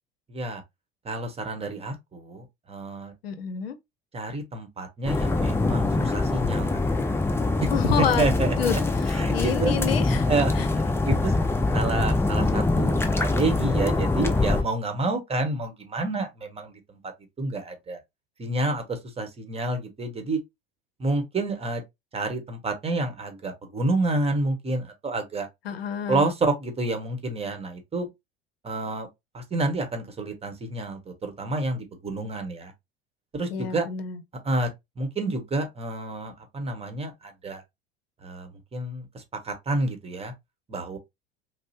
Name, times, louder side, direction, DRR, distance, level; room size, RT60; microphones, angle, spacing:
voice 1, 0.3-0.6 1.0-3.1 4.1-6.7 7.6-7.7 8.0-8.5 9.1-9.7 10.3-11.3 11.7-17.1 17.4-18.0 18.4-20.4 21.0-21.8 22.1-25.5 26.1-28.1 28.6-29.1 29.3-32.7 33.3-33.9 34.4-34.7 35.0-37.6 38.2-40.3 40.7-41.0, right 2 dB, 20° right, 1.1 m, -29 dB
voice 2, 3.2-3.8 7.7-8.8 9.0-10.3 10.6-10.7 25.7-26.2 33.5-34.2, left 7 dB, 75° left, 0.6 m, -28 dB
sound 1, 5.1-14.6, left 2 dB, 10° left, 0.5 m, -24 dB
5.1 x 2.0 x 2.7 m
figure-of-eight pair, 70°, 30 cm